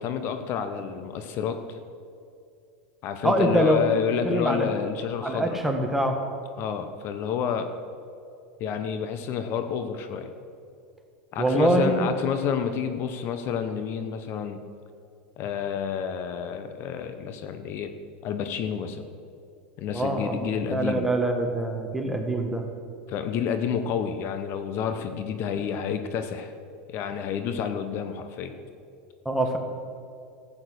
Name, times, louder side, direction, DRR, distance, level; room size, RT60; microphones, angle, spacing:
voice 1, 0.0-1.8 3.0-5.6 6.6-7.7 8.6-10.3 11.3-14.6 15.4-17.9 18.2-19.1 19.8-21.1 23.1-26.5 26.9-28.5, left 7 dB, 50° left, 8 dB, 1.0 m, -29 dB
voice 2, 3.2-3.8 4.2-4.7 5.2-6.2 11.4-12.1 19.9-22.7 29.3-29.6, right 1 dB, 5° right, 3 dB, 1.7 m, -24 dB
13.5 x 8.4 x 6.8 m, 2.4 s
supercardioid pair, 110°, 5 cm